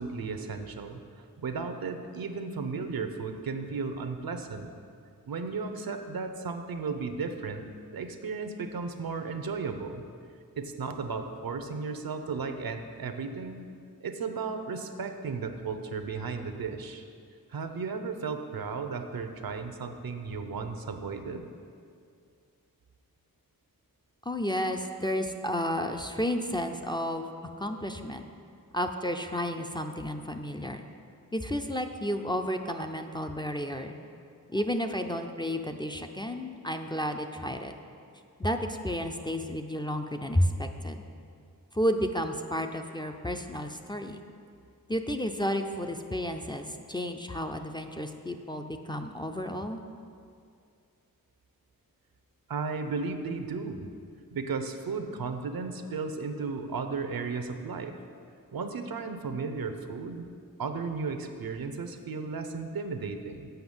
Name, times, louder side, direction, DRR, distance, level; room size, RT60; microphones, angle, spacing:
voice 1, 0.0-4.7 5.3-7.7 7.9-10.0 10.6-13.7 14.0-17.0 17.5-21.5 52.5-53.9 54.3-58.0 58.5-60.3 60.6-63.5, right 4 dB, 80° right, 7 dB, 0.7 m, -35 dB
voice 2, 24.2-27.3 27.6-28.2 28.7-30.8 31.3-34.0 34.5-37.7 38.4-41.0 41.7-44.2 44.9-49.8, equal, 15° left, 5 dB, 0.4 m, -32 dB
7.9 x 5.7 x 7.1 m, 2.3 s
wide cardioid pair, 110°, 35 cm